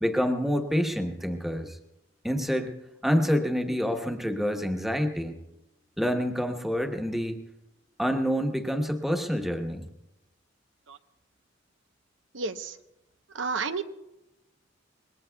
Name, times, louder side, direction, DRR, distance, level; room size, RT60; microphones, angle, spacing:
voice 1, 0.0-1.8 2.2-2.7 3.0-5.4 6.0-7.4 8.0-9.9, equal, ahead, 4 dB, 1.1 m, -27 dB
voice 2, 12.3-12.8 13.3-13.8, right 4 dB, 80° right, 9 dB, 0.9 m, -31 dB
26.0 x 21.0 x 2.3 m, 0.94 s
head